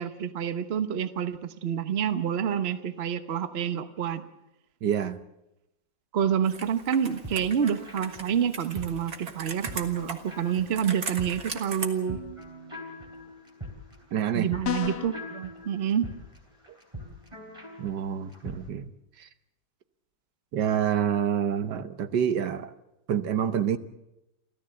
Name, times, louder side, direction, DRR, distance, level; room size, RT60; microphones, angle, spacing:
voice 1, 0.0-4.2 6.1-12.2 14.3-16.1, right 8 dB, 45° right, 11 dB, 1.1 m, -28 dB
voice 2, 4.8-5.2 14.1-14.5 17.8-18.9 19.2-19.3 20.5-22.7 23.1-23.8, right 9 dB, 85° right, 11 dB, 1.6 m, -27 dB
Computer keyboard, 6.4-11.9, right 5 dB, 65° right, 2.2 m, -39 dB
sound 1, 7.0-18.6, equal, 15° right, 3.7 m, -43 dB
sound 2, 14.6-15.2, left 13 dB, 70° left, 1.5 m, -30 dB
28.0 x 14.0 x 7.7 m, 0.91 s
omnidirectional pair, 1.8 m